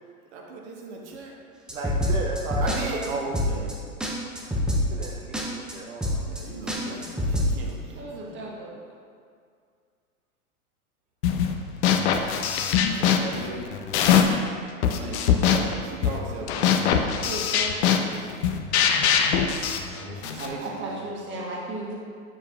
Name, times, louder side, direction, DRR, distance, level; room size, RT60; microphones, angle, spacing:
voice 1, 0.3-1.3 2.6-3.7 6.2-8.4 12.6-13.6 14.9-17.2 19.9-21.1, right 3 dB, 50° right, -1 dB, 1.5 m, -36 dB
sound 1, 1.7-2.8 3.0-3.1 3.3-3.7 4.0-4.1 4.3-5.1 5.3-5.4 5.7-5.8 6.0-6.4 6.7-7.5, left 1 dB, ahead, 0.3 m, -25 dB
voice 2, 1.7-3.3 4.7-6.2, right 2 dB, 65° right, -2 dB, 0.9 m, -35 dB
voice 3, 7.9-8.8 12.9-13.3 17.0-18.0 20.4-21.9, right 2 dB, 25° right, -3 dB, 1.6 m, -36 dB
sound 2, 11.2-11.5 11.8-14.5 14.8-20.5, left 8 dB, 50° left, 0.7 m, -22 dB
8.4 x 7.3 x 2.5 m, 2.1 s
figure-of-eight pair, 95°, 44 cm